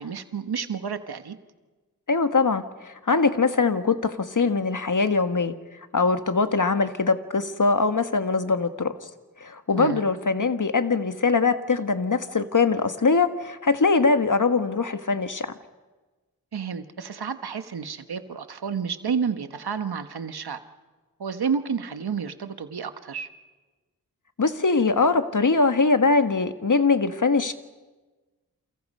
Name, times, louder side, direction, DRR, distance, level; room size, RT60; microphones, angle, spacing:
voice 1, 0.0-1.4 9.7-10.0 16.5-20.6 21.2-23.3, right 6 dB, 85° right, 10 dB, 1.4 m, -30 dB
voice 2, 2.1-5.5 5.9-8.9 9.4-15.5 24.4-27.5, left 4 dB, 55° left, 9 dB, 1.7 m, -22 dB
29.0 x 28.5 x 5.6 m, 1.3 s
cardioid pair, 45°, 37 cm